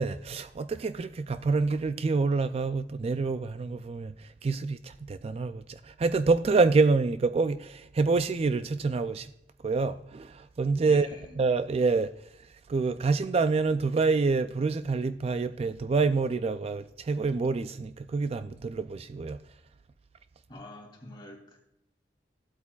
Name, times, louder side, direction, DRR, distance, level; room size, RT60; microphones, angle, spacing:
voice 1, 0.0-9.3 9.6-11.1 11.4-12.1 12.4-19.4, right 4 dB, 35° right, 0.3 m, -27 dB
voice 2, 10.8-11.3 20.5-21.6, left 1 dB, 25° left, 2.8 m, -46 dB
15.0 x 8.2 x 2.3 m
head